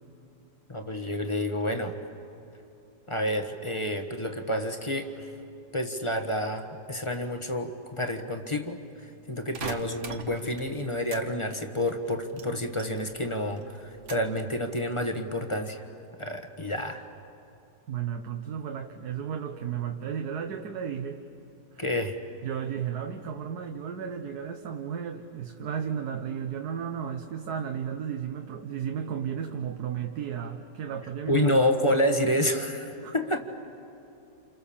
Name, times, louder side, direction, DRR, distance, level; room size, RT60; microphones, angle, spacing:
voice 1, 0.7-2.0 3.1-5.3 5.7-15.8 16.2-17.1 21.8-22.2 31.3-33.4, left 1 dB, 20° left, 6 dB, 1.2 m, -29 dB
sound 1, 9.5-11.3 11.5-13.3 13.6-14.4 14.9-15.3, right 4 dB, 45° right, 1.5 m, -41 dB
voice 2, 17.9-21.2 21.7-21.8 22.4-31.7 33.0-33.1, right 8 dB, 65° right, 5 dB, 1.5 m, -34 dB
29.0 x 28.5 x 7.2 m, 2.8 s
omnidirectional pair, 1.9 m